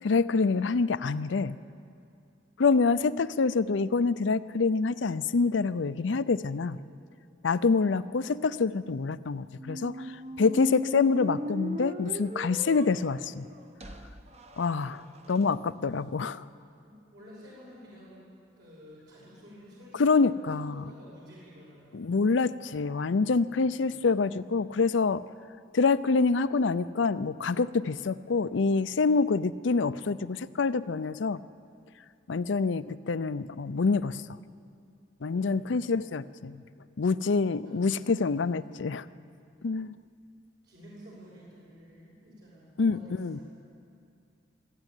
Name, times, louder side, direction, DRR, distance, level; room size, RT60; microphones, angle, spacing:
voice 1, 0.0-1.6 2.6-6.8 7.4-13.5 14.6-15.0 15.3-16.5 20.0-20.8 21.9-25.2 25.7-31.4 32.3-34.2 35.2-36.6 37.0-39.1 39.6-39.9 42.8-43.4, left 4 dB, 80° left, 15 dB, 0.5 m, -26 dB
sound 1, 9.5-15.4, equal, 35° right, 1.0 m, -38 dB
voice 2, 15.3-15.6 16.8-18.3 18.6-22.2 23.8-24.0 35.3-35.9 37.4-38.2 40.6-43.4, equal, 65° right, -7 dB, 6.2 m, -51 dB
23.5 x 13.0 x 9.1 m, 2.5 s
head